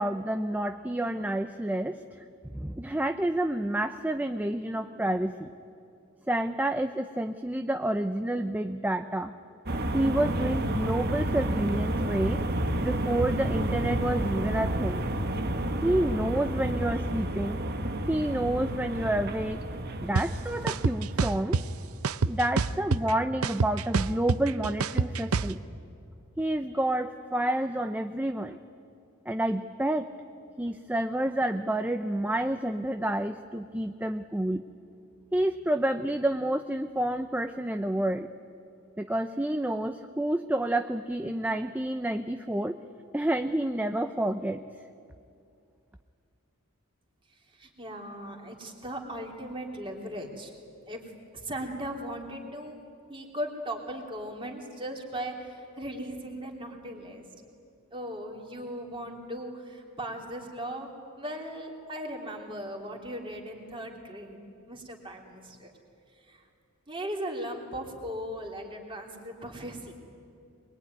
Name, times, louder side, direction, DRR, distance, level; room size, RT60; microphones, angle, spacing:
voice 1, 0.0-2.2 2.5-5.5 6.3-9.3 9.9-12.4 12.8-15.1 15.8-17.6 18.1-19.6 20.0-21.6 22.3-25.6 26.4-28.6 29.3-30.1 30.6-34.6 35.3-38.3 39.0-42.8 43.1-44.6, right 1 dB, 10° right, 8 dB, 0.6 m, -29 dB
sound 1, 9.7-22.0, right 1 dB, 45° right, 1.4 m, -31 dB
sound 2, 20.2-20.3 20.7-21.6 22.0-23.1 23.4-25.5, right 4 dB, 70° right, 0.6 m, -26 dB
voice 2, 47.5-50.5 50.9-51.0 51.3-52.8 53.1-57.2 57.9-60.9 61.2-64.4 64.7-65.7 66.3-66.4 66.9-69.9, equal, 25° right, 1 dB, 3.3 m, -38 dB
23.0 x 22.0 x 9.6 m, 2.5 s
head